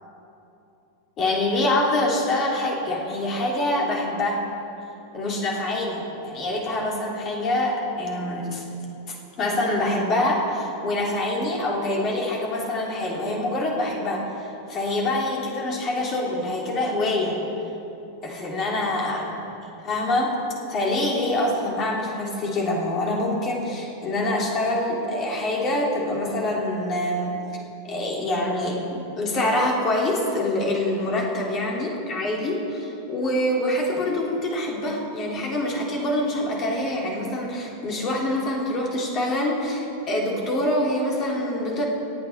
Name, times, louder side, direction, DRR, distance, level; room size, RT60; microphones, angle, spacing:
voice 1, 1.2-4.4 5.1-8.6 9.1-17.4 18.2-19.2 19.6-20.3 20.7-27.4 27.8-28.8 29.2-41.9, left 1 dB, 30° left, -1 dB, 3.1 m, -25 dB
25.5 x 8.9 x 4.3 m, 2.8 s
figure-of-eight pair, 90°, 0 cm